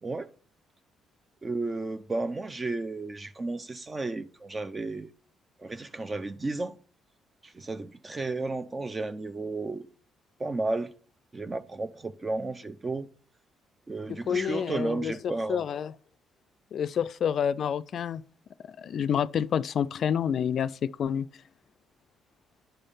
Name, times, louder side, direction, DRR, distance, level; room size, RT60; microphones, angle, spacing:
voice 1, 1.4-5.1 5.6-6.7 7.4-9.9 10.4-10.9 11.3-13.1 13.9-15.7, right 3 dB, 30° right, 0.5 m, -33 dB
voice 2, 14.3-15.9 16.7-18.2 18.7-21.3, left 8 dB, 60° left, 0.3 m, -28 dB
10.0 x 3.4 x 5.4 m
supercardioid pair, 60°, 0 cm